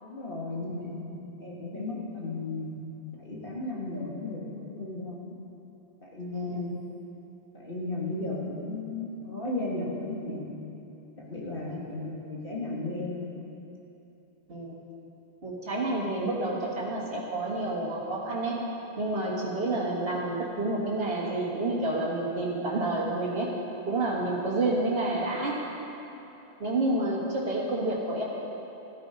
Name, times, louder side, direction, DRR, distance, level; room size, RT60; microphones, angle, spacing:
voice 1, 0.0-1.0 1.4-2.8 3.2-5.3 6.0-6.8 7.5-10.4 11.2-13.2, left 2 dB, 60° left, -4 dB, 2.6 m, -35 dB
voice 2, 6.3-6.7 11.7-11.8 14.5-14.8 15.4-18.6 19.0-23.5 23.9-25.6 26.6-28.2, right 2 dB, 65° right, -6 dB, 1.9 m, -29 dB
14.0 x 13.5 x 5.3 m, 2.9 s
omnidirectional pair, 1.0 m